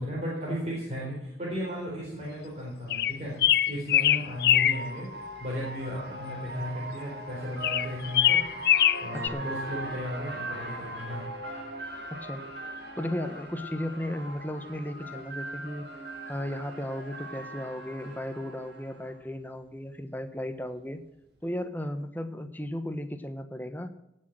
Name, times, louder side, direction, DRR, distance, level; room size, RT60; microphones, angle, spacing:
voice 1, 0.0-11.3, equal, 35° right, -5 dB, 4.1 m, -35 dB
sound 1, 2.9-4.8 7.6-9.3, left 11 dB, 60° left, 0.4 m, -22 dB
sound 2, 3.5-19.1, right 1 dB, 65° right, 3.6 m, -40 dB
voice 2, 9.1-9.5 12.2-12.4 13.0-15.8 16.3-21.0 21.4-23.9, left 1 dB, 10° left, 8 dB, 1.0 m, -35 dB
17.5 x 6.5 x 7.5 m, 0.86 s
head